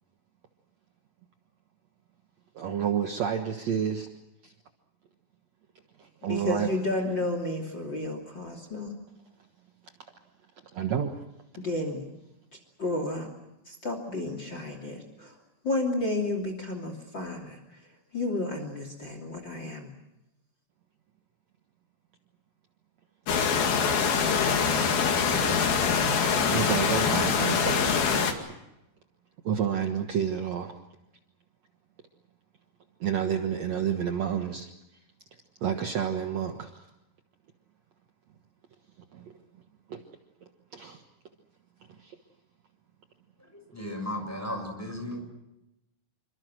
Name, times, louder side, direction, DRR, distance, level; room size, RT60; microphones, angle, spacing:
voice 1, 2.5-4.1 4.4-4.5 6.0-6.7 10.7-11.2 26.2-28.1 29.4-30.8 33.0-35.0 35.6-36.9 39.1-39.3 39.9-40.0 40.7-41.0 41.9-42.2, right 8 dB, 55° right, 2.3 m, -30 dB
voice 2, 6.3-8.9 11.6-12.0 12.8-13.3 13.7-15.3 15.6-17.6 18.1-19.9, left 2 dB, 30° left, 3.3 m, -31 dB
sound 1, 23.3-28.3, left 6 dB, 85° left, 4.1 m, -24 dB
voice 3, 43.5-45.2, left 1 dB, 5° left, 6.8 m, -35 dB
27.5 x 25.0 x 6.3 m
omnidirectional pair, 4.2 m